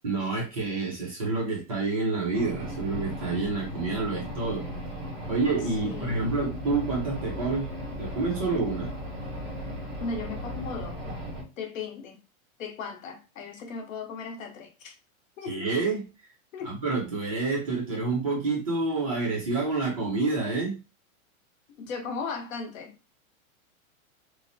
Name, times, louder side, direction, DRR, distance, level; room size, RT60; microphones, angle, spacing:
voice 1, 0.0-4.7 5.3-7.7 8.0-8.9 15.5-16.3 16.6-20.8, right 3 dB, 25° right, 0.5 m, -28 dB
sound 1, 2.3-11.4, equal, 45° right, 1.5 m, -36 dB
voice 2, 5.8-6.2 10.0-11.0 11.6-12.2 12.6-15.0 15.4-15.7 16.5-16.7 21.8-22.9, left 4 dB, 65° left, 0.8 m, -37 dB
3.0 x 2.1 x 2.5 m
supercardioid pair, 180°, 42 cm